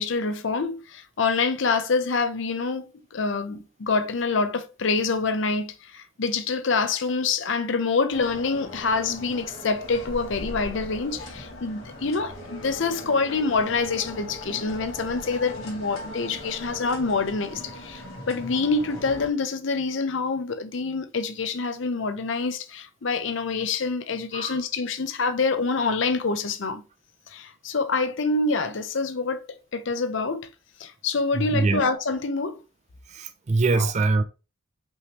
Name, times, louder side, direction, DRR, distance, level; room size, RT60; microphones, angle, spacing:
voice 1, 0.0-26.8 27.3-29.5 29.7-30.5 30.8-32.6 33.7-33.9, left 4 dB, 65° left, 0.6 m, -26 dB
sound 1, 8.1-19.3, left 1 dB, 80° left, 2.0 m, -39 dB
voice 2, 31.3-31.8 33.1-34.2, right 3 dB, 35° right, 0.4 m, -23 dB
5.4 x 3.0 x 3.3 m
head